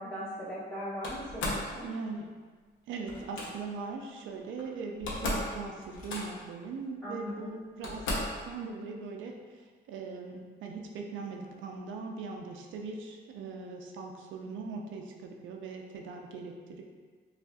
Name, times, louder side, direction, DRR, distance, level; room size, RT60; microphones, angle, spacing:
voice 1, 0.0-1.9 7.0-7.6, equal, 5° left, -9 dB, 1.4 m, -39 dB
Slam, 1.0-1.7 3.1-3.5 4.6-4.7 4.9-5.5 5.8-6.5 7.3-7.4 7.8-8.4, left 1 dB, 90° left, 0.7 m, -35 dB
voice 2, 1.8-2.3 2.9-16.8, right 4 dB, 75° right, 2 dB, 0.4 m, -40 dB
5.2 x 2.4 x 2.3 m, 1.5 s
cardioid pair, 90°, 20 cm